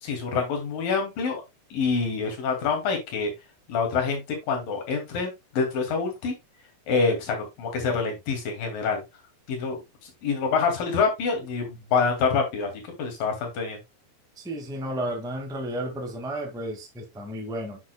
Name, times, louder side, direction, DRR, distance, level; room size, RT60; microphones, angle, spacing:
voice 1, 0.0-1.4 1.7-3.3 3.7-6.3 6.9-9.0 9.5-12.7 13.0-13.8, left 5 dB, 85° left, 4.0 m, -26 dB
voice 2, 14.4-17.8, right 1 dB, 5° right, 0.7 m, -32 dB
9.4 x 6.3 x 2.2 m
omnidirectional pair, 3.8 m